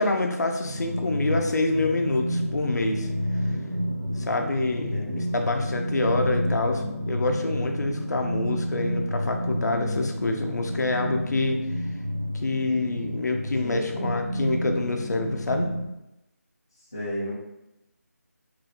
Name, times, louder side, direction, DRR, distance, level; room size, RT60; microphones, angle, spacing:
voice 1, 0.0-3.1 4.2-11.6 12.3-15.7, left 2 dB, 80° left, 4 dB, 0.4 m, -27 dB
sound 1, 0.6-15.9, equal, 75° right, 0.6 m, -30 dB
voice 2, 4.9-5.3 13.6-14.1 16.9-17.3, equal, 15° left, -9 dB, 0.4 m, -33 dB
3.0 x 2.4 x 2.7 m, 0.93 s
figure-of-eight pair, 175°, 9 cm